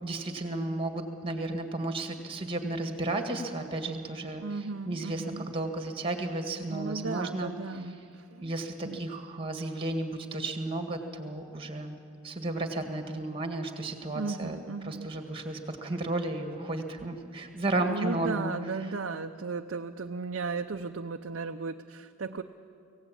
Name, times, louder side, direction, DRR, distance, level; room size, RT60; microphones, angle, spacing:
voice 1, 0.0-7.5 8.4-12.0 12.2-18.5, right 2 dB, 25° right, 5 dB, 1.9 m, -33 dB
voice 2, 4.4-5.5 6.7-8.5 8.8-9.0 14.1-15.1 17.8-22.4, right 4 dB, 60° right, 4 dB, 0.6 m, -35 dB
24.5 x 17.0 x 8.7 m, 2.6 s
head